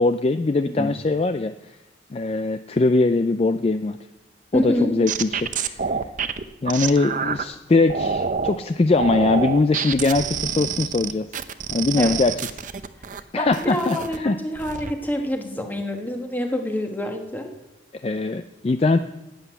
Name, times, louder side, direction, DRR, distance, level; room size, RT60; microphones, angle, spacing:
voice 1, 0.0-1.5 2.1-4.0 4.5-5.9 6.6-11.3 11.7-12.3 13.3-14.4 18.0-19.0, left 3 dB, 30° left, 10 dB, 0.4 m, -21 dB
voice 2, 4.5-4.9 12.0-12.2 13.1-17.5, left 1 dB, 10° left, 3 dB, 1.3 m, -27 dB
sound 1, 4.5-7.4 7.9-8.6 8.9-13.2 13.5-14.2 14.6-14.9, right 6 dB, 40° right, 0.6 m, -27 dB
11.5 x 8.1 x 9.1 m, 1.0 s
head